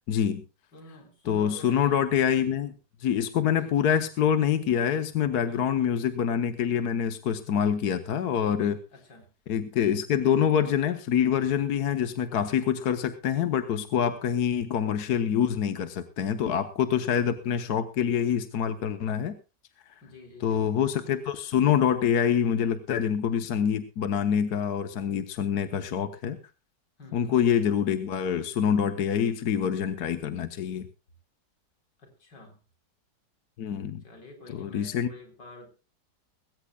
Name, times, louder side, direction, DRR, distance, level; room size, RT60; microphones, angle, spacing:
voice 1, 0.1-0.4 1.2-2.7 3.0-8.8 9.5-19.4 20.4-26.4 27.1-30.9 33.6-34.0 34.5-35.1, left 8 dB, 65° left, 10 dB, 1.4 m, -26 dB
voice 2, 0.7-2.0 3.5-3.8 5.5-5.9 8.9-9.3 14.2-14.5 20.0-20.8 27.0-27.3 32.0-32.6 34.0-35.7, left 1 dB, 85° left, 4 dB, 4.6 m, -49 dB
20.0 x 17.0 x 2.3 m, 0.32 s
omnidirectional pair, 1.8 m